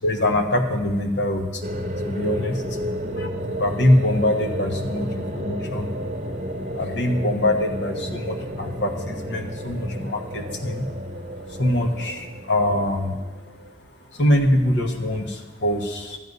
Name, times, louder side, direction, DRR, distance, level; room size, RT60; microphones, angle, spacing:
voice 1, 0.0-1.6 2.0-2.8 3.1-3.3 3.6-5.9 6.7-10.9 11.5-13.1 14.1-16.2, left 1 dB, 65° left, 4 dB, 1.2 m, -23 dB
sound 1, 1.6-13.7, equal, 40° right, 1.2 m, -31 dB
11.5 x 9.7 x 5.3 m, 1.3 s
head